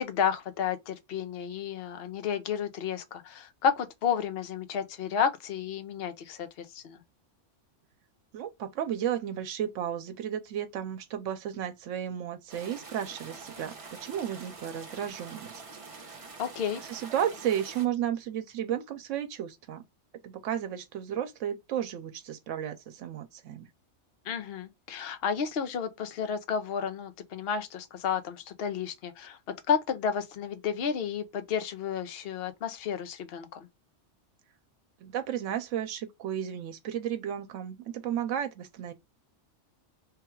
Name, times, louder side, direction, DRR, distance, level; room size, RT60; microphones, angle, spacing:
voice 1, 0.0-7.0 16.4-16.8 24.3-29.4 29.7-33.7, left 7 dB, 60° left, 0.8 m, -31 dB
voice 2, 8.3-15.6 16.8-19.8 20.2-23.7 35.0-38.9, right 10 dB, 90° right, 1.0 m, -33 dB
sound 1, 12.5-17.9, right 4 dB, 35° right, 0.7 m, -46 dB
3.4 x 2.3 x 4.4 m
omnidirectional pair, 1.3 m